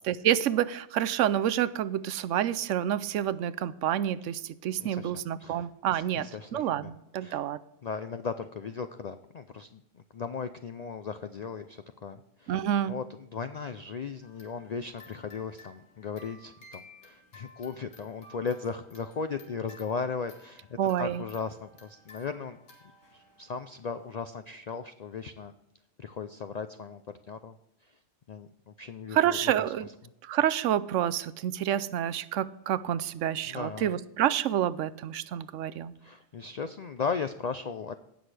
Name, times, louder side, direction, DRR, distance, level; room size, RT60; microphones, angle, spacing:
voice 1, 0.1-7.6 12.5-13.0 20.8-21.2 29.1-29.9 30.2-35.9, right 11 dB, 80° right, 15 dB, 0.9 m, -28 dB
voice 2, 4.8-5.7 5.9-6.9 7.2-7.4 7.8-9.8 10.1-12.6 12.9-20.7 21.0-22.6 23.1-25.5 26.0-27.0 27.3-27.6 28.3-29.5 33.5-33.9 36.0-37.9, left 5 dB, 65° left, 9 dB, 0.4 m, -37 dB
sound 1, 14.2-24.2, left 2 dB, 90° left, 2.5 m, -55 dB
17.0 x 6.3 x 3.3 m, 0.85 s
omnidirectional pair, 1.3 m